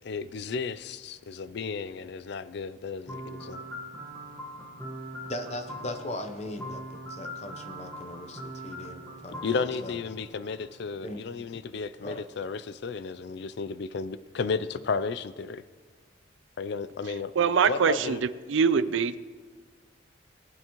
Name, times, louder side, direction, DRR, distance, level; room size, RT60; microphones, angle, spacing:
voice 1, 0.0-3.6 9.4-15.6 16.6-17.3 17.7-18.2, left 5 dB, 55° left, 15 dB, 0.4 m, -33 dB
sound 1, 3.1-10.9, equal, 10° left, 1.4 m, -41 dB
voice 2, 5.3-10.0 11.0-11.2 12.0-12.2, left 1 dB, 30° left, 7 dB, 0.8 m, -39 dB
voice 3, 17.4-18.2 18.5-19.2, right 6 dB, 65° right, 15 dB, 0.4 m, -23 dB
19.0 x 9.0 x 3.0 m, 1.4 s
head